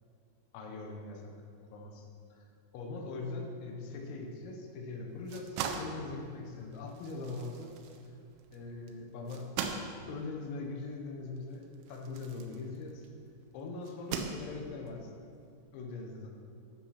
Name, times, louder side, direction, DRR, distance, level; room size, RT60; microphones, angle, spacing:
voice 1, 0.5-1.3 1.7-2.5 2.7-7.7 8.5-9.5 10.1-13.1 13.5-15.1 15.7-16.3, left 3 dB, 85° left, 2 dB, 3.8 m, -41 dB
sound 1, 5.1-13.2 13.8-14.9, right 6 dB, 80° right, 3.3 m, -41 dB
11.5 x 7.2 x 5.9 m, 2.4 s
omnidirectional pair, 5.9 m